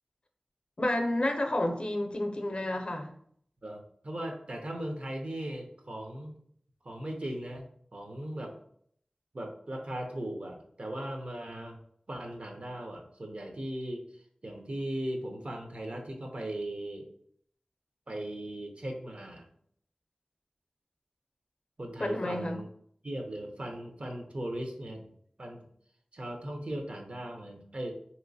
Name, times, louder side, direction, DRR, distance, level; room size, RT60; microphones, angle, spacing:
voice 1, 0.8-3.1 22.0-22.6, left 1 dB, 50° left, 4 dB, 0.5 m, -30 dB
voice 2, 3.6-6.4 6.8-7.6 7.9-8.5 9.3-11.8 12.1-14.0 14.4-17.1 18.1-19.5 21.8-22.7 23.0-25.1 25.4-25.6 26.1-27.9, right 1 dB, 60° right, 3 dB, 0.6 m, -38 dB
3.2 x 2.9 x 2.6 m, 0.65 s
wide cardioid pair, 55°, 2 cm